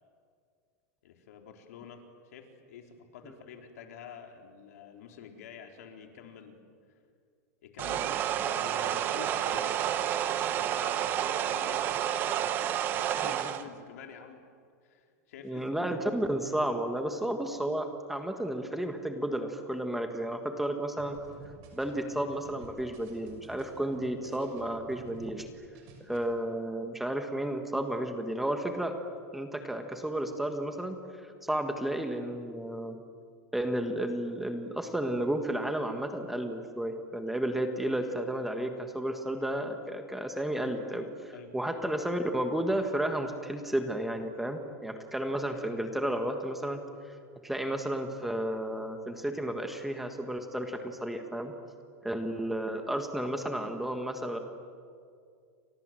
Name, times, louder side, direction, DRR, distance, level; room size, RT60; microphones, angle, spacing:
voice 1, 1.0-6.7 7.6-14.4 14.8-15.6 26.1-26.2 41.3-41.5, left 7 dB, 75° left, 3 dB, 4.0 m, -48 dB
sound 1, 7.8-13.6, right 10 dB, 25° right, 1.0 m, -30 dB
voice 2, 15.4-21.2 21.7-25.5 26.1-28.9 29.3-31.0 31.4-33.0 33.5-46.8 47.1-47.2 47.4-51.5 52.0-54.4, right 1 dB, ahead, 5 dB, 1.4 m, -32 dB
sound 2, 21.0-25.5 25.7-26.2, right 3 dB, 40° right, 6.3 m, -51 dB
29.5 x 25.5 x 7.7 m, 2.3 s
supercardioid pair, 175°, 8 cm